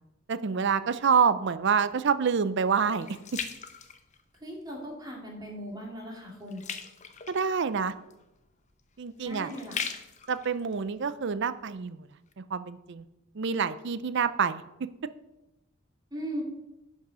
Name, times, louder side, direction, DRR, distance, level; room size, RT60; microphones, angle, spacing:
voice 1, 0.3-3.2 7.3-7.9 9.0-9.5 10.3-12.1 12.4-13.0 13.4-14.6, right 6 dB, 60° right, 13 dB, 0.5 m, -27 dB
sound 1, 1.4-4.7 5.2-5.5 5.8-11.7 12.3-12.4, left 6 dB, 35° left, 0.7 m, -41 dB
voice 2, 4.4-6.6 9.2-9.8 16.1-16.4, equal, 20° right, -1 dB, 2.2 m, -38 dB
10.5 x 5.4 x 6.1 m, 0.96 s
head